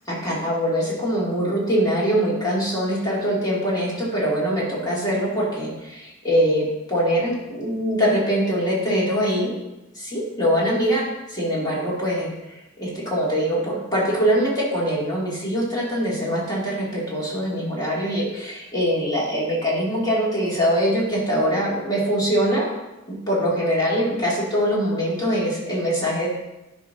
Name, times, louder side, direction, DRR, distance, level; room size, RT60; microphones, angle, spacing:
voice 1, 0.1-9.6 9.9-11.0 11.3-22.7 23.1-26.3, equal, 20° left, -6 dB, 2.5 m, -23 dB
11.0 x 6.1 x 2.7 m, 0.98 s
head